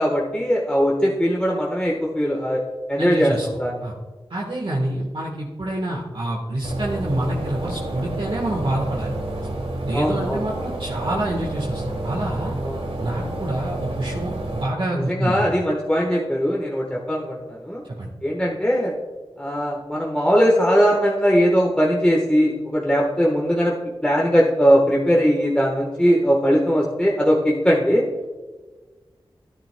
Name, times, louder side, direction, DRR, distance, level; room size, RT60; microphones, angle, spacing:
voice 1, 0.0-2.6 2.9-3.3 3.6-3.7 9.9-10.4 12.6-12.8 15.1-17.8 18.2-18.9 19.4-23.7 24.0-28.0, equal, 10° left, -2 dB, 1.2 m, -20 dB
voice 2, 3.0-3.5 3.8-3.9 4.3-9.1 9.8-12.5 13.0-15.5 18.0-18.1, right 1 dB, 55° right, -3 dB, 1.3 m, -27 dB
sound 1, 6.6-14.6, right 2 dB, 75° right, 1.5 m, -30 dB
13.0 x 9.2 x 2.2 m, 1.3 s
wide cardioid pair, 60°, 10 cm